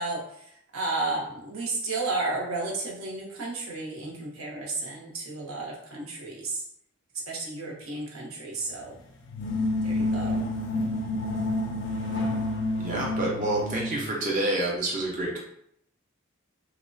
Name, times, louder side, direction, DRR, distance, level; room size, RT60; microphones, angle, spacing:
voice 1, 0.0-6.6 7.3-9.0 9.8-10.4, right 3 dB, 90° right, -2 dB, 0.8 m, -33 dB
sound 1, 9.3-14.0, left 2 dB, 60° left, 0.4 m, -29 dB
voice 2, 12.8-15.4, right 1 dB, 40° right, -3 dB, 0.5 m, -28 dB
2.9 x 2.0 x 2.6 m, 0.71 s
head